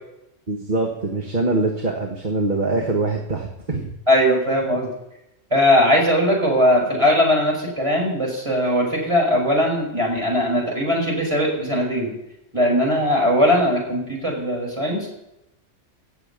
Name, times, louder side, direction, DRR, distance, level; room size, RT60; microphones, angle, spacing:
voice 1, 0.5-3.9, right 2 dB, 40° right, 2 dB, 1.6 m, -23 dB
voice 2, 4.1-4.9 5.5-12.1 12.5-15.1, equal, 25° right, -1 dB, 5.3 m, -19 dB
16.5 x 7.4 x 8.2 m, 0.88 s
omnidirectional pair, 1.2 m